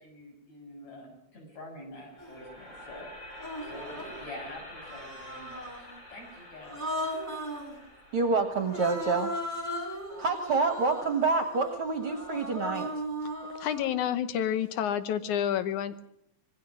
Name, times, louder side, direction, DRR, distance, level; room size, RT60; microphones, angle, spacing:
voice 1, 0.0-3.1 3.6-6.8, left 1 dB, 65° left, 1 dB, 8.2 m, -46 dB
sound 1, 1.9-12.0, left 1 dB, 35° left, 6.0 m, -49 dB
Human voice, 2.2-2.3 3.3-4.2 4.8-5.9 6.6-7.7 8.6-13.9, equal, 5° left, 4.7 m, -37 dB
voice 2, 8.1-9.3 10.2-12.9, right 4 dB, 55° right, 6 dB, 2.1 m, -27 dB
voice 3, 13.6-16.1, left 10 dB, 85° left, 12 dB, 2.5 m, -29 dB
26.0 x 20.5 x 6.3 m, 0.78 s
omnidirectional pair, 3.3 m